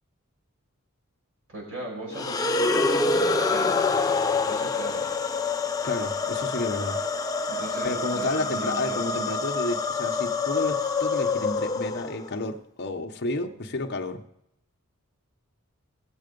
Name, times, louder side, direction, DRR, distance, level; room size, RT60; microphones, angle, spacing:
voice 1, 1.5-3.9 4.5-5.1 7.5-9.2, right 1 dB, 65° right, -2 dB, 5.6 m, -37 dB
sound 1, 2.1-12.4, left 4 dB, 15° left, 0.6 m, -26 dB
voice 2, 5.8-7.0 7.8-14.2, left 2 dB, 50° left, 4 dB, 0.9 m, -31 dB
18.0 x 7.6 x 5.3 m, 0.80 s
head